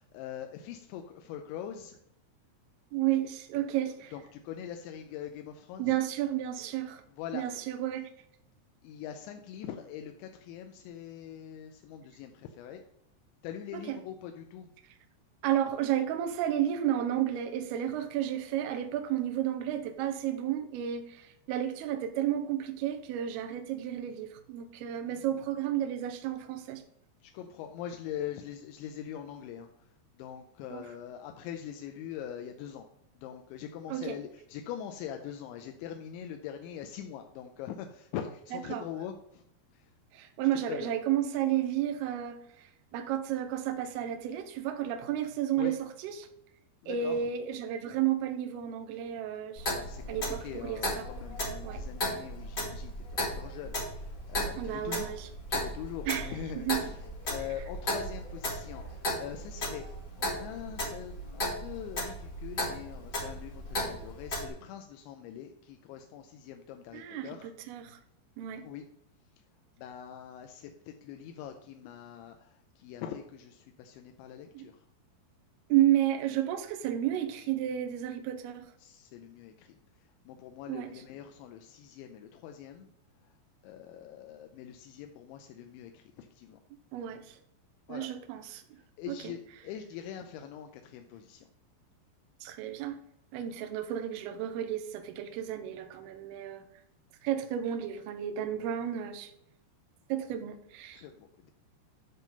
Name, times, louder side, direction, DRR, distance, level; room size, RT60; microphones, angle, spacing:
voice 1, 0.0-2.0 4.1-6.0 7.1-7.6 8.8-12.8 13.4-14.7 25.0-25.3 27.2-29.7 30.1-32.9 33.2-39.4 39.7-39.9 40.7-40.9 45.6-45.7 46.8-47.2 49.7-52.9 53.2-55.1 55.5-56.9 57.2-59.9 60.2-67.5 68.6-68.9 69.8-74.8 78.8-79.7 80.3-82.9 83.2-83.3 83.6-86.6 87.9-88.1 89.0-91.5 100.9-101.5, left 9 dB, 90° left, 5 dB, 3.0 m, -43 dB
voice 2, 2.9-4.1 5.8-7.0 7.3-8.1 13.7-14.0 15.4-26.8 30.7-30.8 33.9-34.2 38.7-38.8 40.1-46.3 46.9-49.7 50.1-51.1 51.6-51.8 54.6-55.3 56.1-56.9 66.9-67.3 67.7-68.0 68.4-68.7 74.5-74.7 75.7-78.7 80.7-80.9 86.9-87.4 87.9-88.6 89.1-89.2 92.4-93.0 93.3-96.6 97.2-99.3 100.1-101.0, right 11 dB, 80° right, 7 dB, 2.5 m, -32 dB
Clock, 49.6-64.5, left 1 dB, 40° left, 1.7 m, -36 dB
9.9 x 3.8 x 5.3 m, 0.73 s
omnidirectional pair, 5.1 m